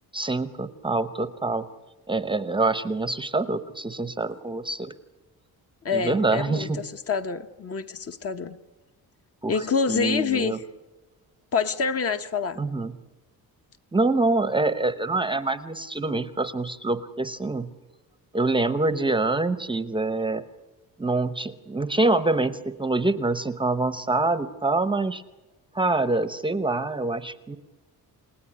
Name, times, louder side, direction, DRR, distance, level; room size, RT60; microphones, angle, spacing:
voice 1, 0.1-1.7 2.1-4.9 5.9-6.8 9.4-9.5 9.9-10.6 12.6-12.9 13.9-17.7 18.3-20.4 21.0-25.2 25.7-27.6, right 2 dB, 15° right, 12 dB, 0.8 m, -25 dB
voice 2, 5.8-8.6 9.5-10.6 11.5-12.6, left 5 dB, 40° left, 8 dB, 1.2 m, -27 dB
29.0 x 18.0 x 9.8 m, 1.2 s
cardioid pair, 155°, 36 cm